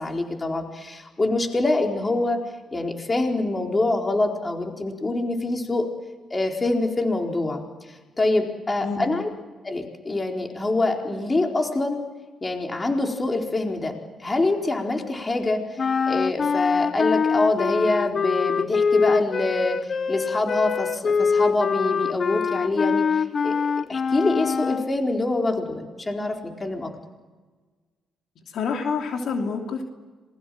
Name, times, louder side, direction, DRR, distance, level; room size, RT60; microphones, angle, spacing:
voice 1, 0.0-2.4 2.7-5.9 6.3-7.6 8.2-9.3 9.6-12.0 12.4-13.9 14.2-15.8 16.1-19.8 20.1-23.6 23.9-26.9, left 2 dB, 25° left, 2 dB, 4.2 m, -25 dB
sound 1, 15.8-24.9, left 5 dB, 45° left, 0.9 m, -24 dB
voice 2, 28.5-29.8, left 5 dB, 70° left, 3 dB, 3.1 m, -27 dB
27.0 x 21.5 x 7.7 m, 1.3 s
cardioid pair, 90°, 0 cm